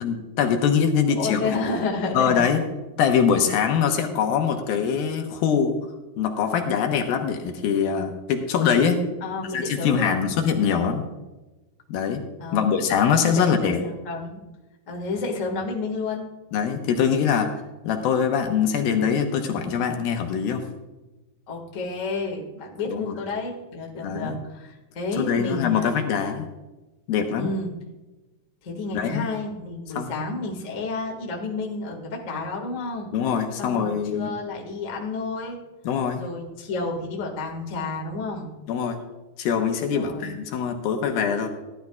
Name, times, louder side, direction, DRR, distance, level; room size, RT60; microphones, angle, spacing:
voice 1, 0.0-1.5 2.1-2.6 3.0-5.8 6.2-9.0 9.5-11.0 11.9-12.2 12.5-13.8 16.5-17.5 17.8-20.6 22.9-23.2 24.0-24.4 25.2-26.5 27.1-27.5 28.9-29.2 30.0-30.1 33.1-34.3 35.8-36.2 38.7-39.0 39.4-41.5, left 7 dB, 75° left, 4 dB, 2.7 m, -23 dB
voice 2, 1.1-2.5 9.2-10.1 12.4-12.7 13.1-13.7 14.0-14.4 14.9-16.3 21.5-25.9 27.4-27.7 28.6-33.1 33.6-35.6 36.1-38.5 39.9-40.3, left 3 dB, 40° left, 0 dB, 1.1 m, -30 dB
16.0 x 11.5 x 2.3 m, 1.1 s
omnidirectional pair, 4.5 m